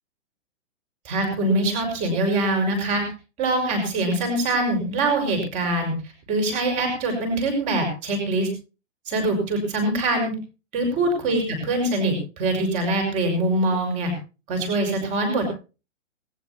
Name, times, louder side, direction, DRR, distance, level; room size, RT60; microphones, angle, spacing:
voice 1, 1.0-3.0 3.4-5.9 6.3-8.5 9.1-10.3 10.7-14.1 14.5-15.6, right 2 dB, 20° right, 4 dB, 5.9 m, -23 dB
19.5 x 18.5 x 2.9 m, 0.34 s
hypercardioid pair, 175°, 38 cm